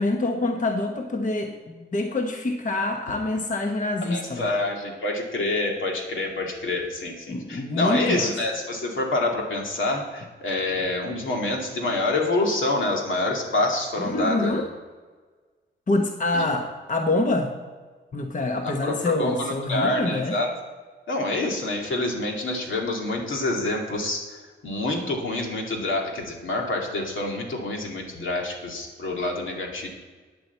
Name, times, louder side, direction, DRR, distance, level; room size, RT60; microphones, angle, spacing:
voice 1, 0.0-4.5 7.3-8.3 14.0-14.7 15.9-17.5 18.1-20.4, left 2 dB, 40° left, 4 dB, 1.1 m, -26 dB
voice 2, 4.0-14.6 16.3-16.4 18.6-20.5 21.1-29.9, left 2 dB, 85° left, 0 dB, 2.4 m, -27 dB
9.6 x 7.6 x 8.1 m, 1.4 s
wide cardioid pair, 135°, 20 cm